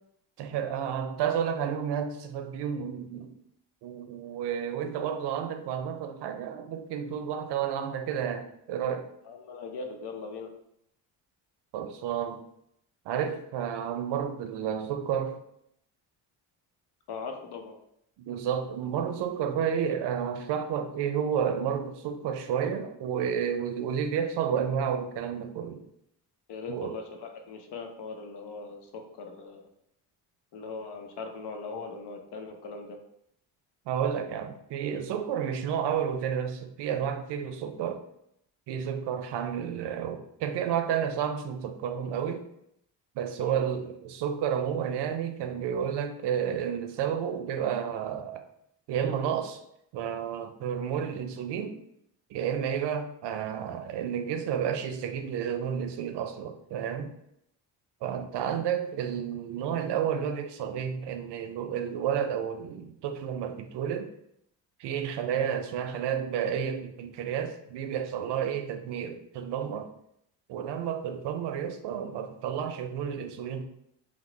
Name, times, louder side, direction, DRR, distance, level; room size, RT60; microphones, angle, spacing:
voice 1, 0.4-3.3 3.8-9.1 11.7-12.4 13.1-15.4 18.2-25.8 26.7-27.0 33.9-38.0 38.7-42.5 43.2-48.4 48.9-49.6 49.9-51.8 52.3-57.1 58.0-64.1 64.8-69.9 70.5-73.7, right 8 dB, 70° right, 7 dB, 0.5 m, -31 dB
voice 2, 9.3-10.5 17.1-17.8 26.5-28.8 29.2-29.6 30.5-33.0 43.4-43.6, left 4 dB, 70° left, 4 dB, 0.7 m, -40 dB
2.9 x 2.0 x 3.7 m, 0.75 s
supercardioid pair, 75°, 43 cm